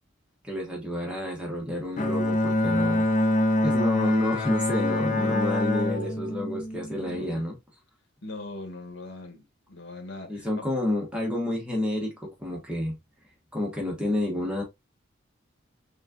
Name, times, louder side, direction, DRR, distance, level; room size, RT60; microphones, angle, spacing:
voice 1, 0.4-3.1 3.6-7.5 10.3-13.0 13.5-14.6, left 1 dB, 5° right, 1.3 m, -29 dB
Bowed string instrument, 2.0-7.4, left 1 dB, 40° left, 0.6 m, -25 dB
voice 2, 6.9-7.4 8.2-10.7, left 2 dB, 85° left, 1.3 m, -41 dB
4.2 x 3.7 x 2.4 m
head